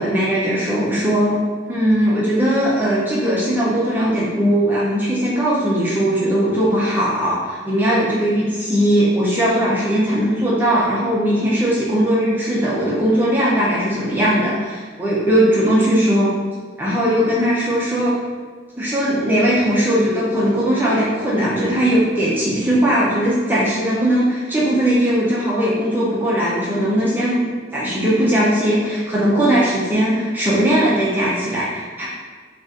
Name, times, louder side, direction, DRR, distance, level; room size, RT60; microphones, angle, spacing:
voice 1, 0.0-1.3 1.7-16.3 16.8-18.1 18.8-27.4 27.7-32.1, equal, 10° right, -7 dB, 0.6 m, -19 dB
3.8 x 2.4 x 3.7 m, 1.5 s
head